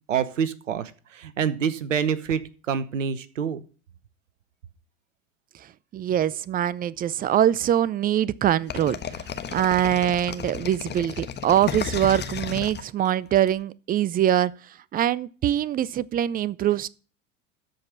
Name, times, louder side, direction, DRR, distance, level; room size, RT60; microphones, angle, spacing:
voice 1, 0.0-2.4 2.7-3.6, right 7 dB, 80° right, 1.1 m, -27 dB
voice 2, 5.9-14.5 14.9-16.9, right 11 dB, 25° right, 0.5 m, -23 dB
sound 1, 8.7-13.5, left 7 dB, 25° left, 1.2 m, -33 dB
13.5 x 5.2 x 6.0 m
figure-of-eight pair, 75°, 38 cm